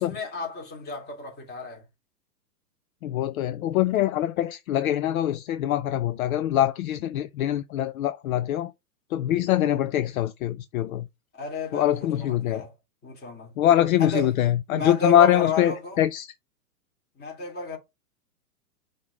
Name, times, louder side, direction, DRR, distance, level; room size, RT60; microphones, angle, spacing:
voice 1, 0.0-1.8 11.3-12.7 13.0-13.5 14.0-14.3 14.7-16.0 17.2-17.8, left 2 dB, 20° left, 3.1 m, -33 dB
voice 2, 3.0-8.7 9.1-11.1 11.7-12.6 13.6-16.3, left 12 dB, 60° left, 0.6 m, -23 dB
5.6 x 3.7 x 4.8 m
hypercardioid pair, 125°, 48 cm